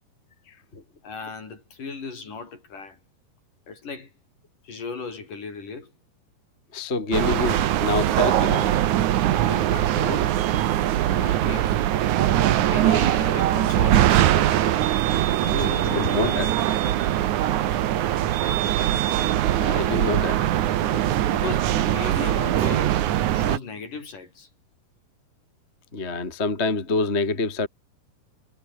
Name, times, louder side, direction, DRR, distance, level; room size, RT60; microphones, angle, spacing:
voice 1, 0.5-0.8 6.7-8.7 15.5-16.5 19.5-20.5 20.8-21.0 25.9-27.7, left 3 dB, 20° left, 2.6 m, -27 dB
voice 2, 1.0-3.0 3.7-4.1 4.6-5.9 9.5-10.4 11.1-11.8 12.5-14.7 15.4-16.6 21.3-23.0 23.3-24.5, left 4 dB, 55° left, 6.9 m, -36 dB
sound 1, 7.1-23.6, right 12 dB, 65° right, 2.2 m, -22 dB
omnidirectional pair, 4.7 m